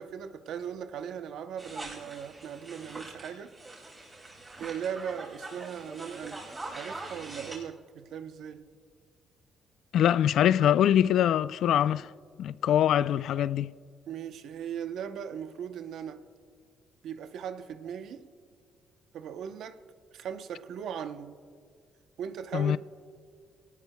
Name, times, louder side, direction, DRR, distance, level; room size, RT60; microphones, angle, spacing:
voice 1, 0.0-3.5 4.6-8.7 14.1-16.2 17.0-18.3 19.1-19.8 20.1-21.4 22.2-22.8, right 8 dB, 75° right, 0.7 m, -38 dB
sound 1, 1.6-7.6, right 2 dB, 25° right, 4.8 m, -43 dB
voice 2, 9.9-12.1 12.4-13.7 22.5-22.8, left 10 dB, 75° left, 0.3 m, -23 dB
23.0 x 18.5 x 2.2 m
cardioid pair, 90°, 0 cm